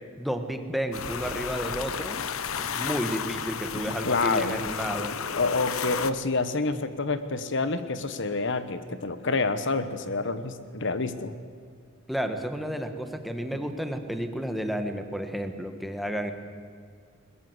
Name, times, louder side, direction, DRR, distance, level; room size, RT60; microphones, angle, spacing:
voice 1, 0.2-2.2 2.6-5.2 12.1-16.3, equal, ahead, 6 dB, 1.4 m, -31 dB
sound 1, 0.9-6.1, left 7 dB, 80° left, 0.9 m, -33 dB
voice 2, 4.0-4.6 5.4-11.3, left 3 dB, 60° left, 11 dB, 1.1 m, -28 dB
21.5 x 21.0 x 8.0 m, 2.1 s
head